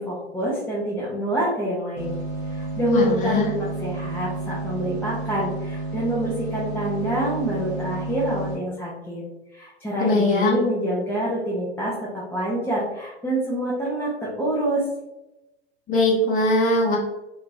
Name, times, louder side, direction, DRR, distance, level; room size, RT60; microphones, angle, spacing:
voice 1, 0.0-2.2 2.5-9.2 9.5-14.8, right 1 dB, 5° left, -8 dB, 0.5 m, -26 dB
sound 1, 2.0-8.6, right 3 dB, 50° right, 0.8 m, -31 dB
voice 2, 2.9-3.5 10.0-10.6 15.9-17.0, left 2 dB, 25° left, -3 dB, 0.9 m, -20 dB
2.8 x 2.4 x 2.6 m, 0.97 s
hypercardioid pair, 105°, 32 cm